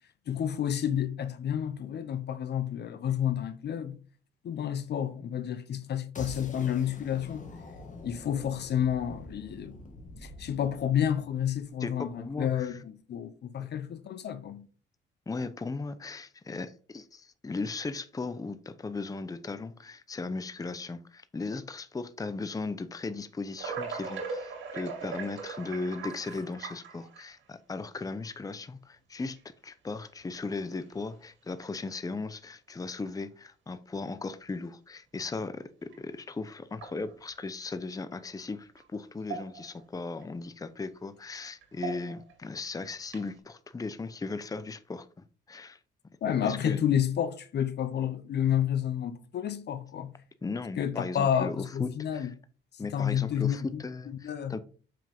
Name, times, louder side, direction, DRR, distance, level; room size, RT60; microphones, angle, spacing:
voice 1, 0.3-4.0 4.4-7.5 8.0-9.8 10.2-14.7 46.2-50.1 50.8-52.3 52.8-53.8 54.2-54.6, left 9 dB, 55° left, 0.8 m, -30 dB
sound 1, 6.2-12.1, left 2 dB, 40° left, 1.7 m, -46 dB
voice 2, 11.8-12.8 13.6-13.7 15.3-45.1 45.5-45.8 46.4-46.8 50.4-52.3 52.8-54.6, left 3 dB, 20° left, 0.7 m, -37 dB
sound 2, 23.6-27.4 28.2-28.3 29.4-29.5 30.2-30.5 30.9-31.0 31.5-31.7 33.0-33.1 35.9-36.0 36.7-37.4 38.8-38.9 39.2-39.8 40.2-40.3 41.6-42.3 43.0-43.4, right 5 dB, 75° right, 2.3 m, -39 dB
7.3 x 5.8 x 3.6 m
cardioid pair, 90°, 20 cm